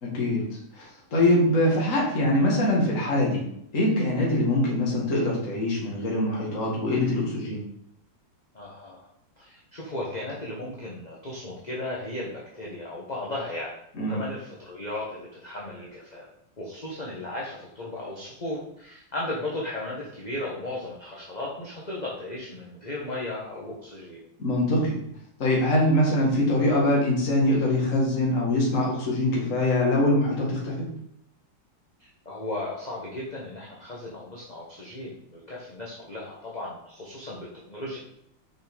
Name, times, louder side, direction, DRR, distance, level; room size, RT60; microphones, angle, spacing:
voice 1, 0.0-3.4 3.7-7.6 13.9-14.2 24.4-25.0 25.4-30.9, left 1 dB, 40° left, -3 dB, 2.4 m, -23 dB
voice 2, 8.5-9.1 9.4-13.7 14.1-16.3 16.6-24.2 32.0-38.0, left 1 dB, 25° left, -5 dB, 1.4 m, -35 dB
6.6 x 5.7 x 5.3 m, 0.74 s
omnidirectional pair, 2.2 m